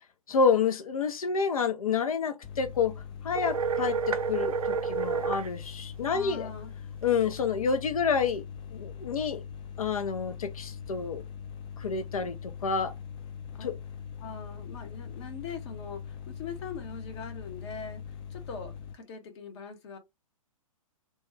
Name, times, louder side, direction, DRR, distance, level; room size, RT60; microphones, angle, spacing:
voice 1, 0.3-2.9 3.2-6.5 7.0-8.4 8.7-9.4 9.8-11.2 11.8-12.9 13.6-13.8, left 5 dB, 75° left, 0.7 m, -28 dB
sound 1, 2.4-18.9, left 7 dB, 25° left, 0.5 m, -42 dB
sound 2, 3.3-5.5, right 6 dB, 75° right, 0.5 m, -29 dB
voice 2, 6.1-6.7 13.5-13.7 14.2-20.0, left 5 dB, 50° left, 1.1 m, -42 dB
3.0 x 2.3 x 3.2 m
figure-of-eight pair, 115°, 18 cm